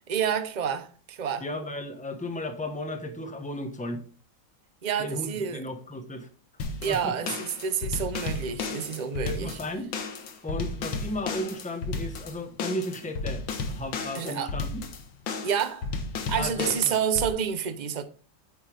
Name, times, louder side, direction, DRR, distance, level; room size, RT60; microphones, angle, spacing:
voice 1, 0.1-1.4 4.8-5.6 6.8-9.6 14.1-14.5 15.4-15.9 16.3-18.0, right 7 dB, 50° right, 0.5 m, -29 dB
voice 2, 1.4-4.0 5.0-6.3 6.8-7.1 9.2-9.9 10.4-13.4 13.7-14.8 16.4-16.9, left 1 dB, 5° left, 1.0 m, -34 dB
sound 1, 6.6-17.3, left 4 dB, 90° left, 2.1 m, -33 dB
9.1 x 8.2 x 3.4 m
omnidirectional pair, 2.1 m